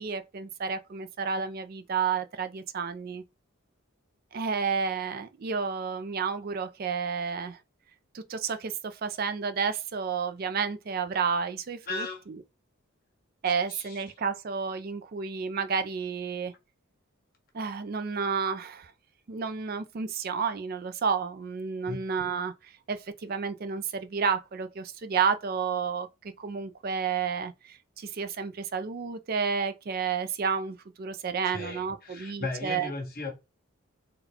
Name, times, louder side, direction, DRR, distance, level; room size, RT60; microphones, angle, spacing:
voice 1, 0.0-3.2 4.3-7.6 8.1-12.4 13.4-16.5 17.5-18.9 19.3-26.1 26.4-32.9, right 6 dB, 45° right, 0.4 m, -31 dB
voice 2, 11.9-12.2 13.7-14.0 21.8-22.0 31.4-33.3, left 3 dB, 45° left, 1.3 m, -36 dB
3.9 x 2.3 x 4.2 m
head